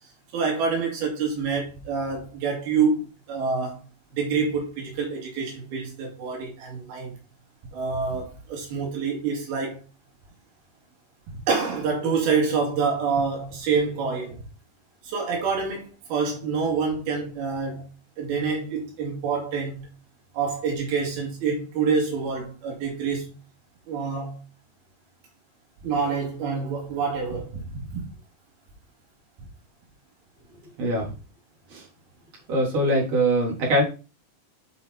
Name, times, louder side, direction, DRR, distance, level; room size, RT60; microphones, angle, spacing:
voice 1, 0.3-3.8 4.1-7.2 7.7-9.8 11.5-14.4 15.0-17.9 18.2-19.9 20.3-23.3 23.9-24.4 25.8-28.0 31.0-31.1, right 5 dB, 80° right, 4.1 m, -27 dB
voice 2, 32.5-33.8, right 1 dB, 45° right, 4.1 m, -22 dB
9.0 x 5.3 x 4.0 m
omnidirectional pair, 4.3 m